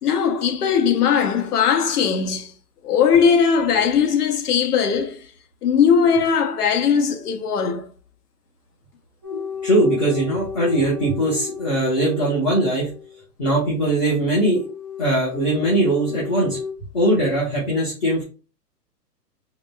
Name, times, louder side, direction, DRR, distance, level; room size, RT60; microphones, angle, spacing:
voice 1, 0.0-2.5 2.8-5.3 5.6-7.9, left 7 dB, 70° left, 0.8 m, -19 dB
sound 1, 9.2-13.2 14.5-16.7, left 7 dB, 15° right, 0.7 m, -34 dB
voice 2, 9.3-12.9 13.4-14.7 15.0-16.6 16.9-18.2, right 1 dB, 25° left, 1.1 m, -20 dB
4.8 x 2.2 x 2.2 m
hypercardioid pair, 175°, 49 cm